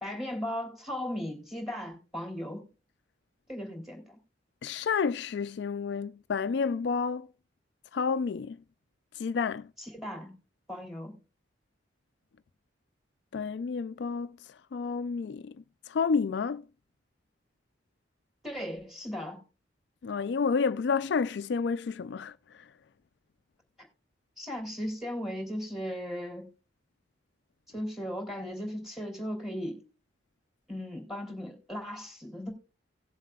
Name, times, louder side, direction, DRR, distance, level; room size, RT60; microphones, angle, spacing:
voice 1, 0.0-2.6 3.5-4.2 9.8-10.3 10.7-11.2 18.4-19.4 23.8-23.9 24.4-26.5 27.7-29.8 30.7-32.5, equal, ahead, 3.0 m, -37 dB
voice 2, 4.6-7.3 7.9-8.6 9.2-9.7 13.3-14.4 14.7-15.6 15.9-16.7 20.0-22.6, left 5 dB, 65° left, 0.4 m, -30 dB
18.0 x 7.4 x 2.3 m
head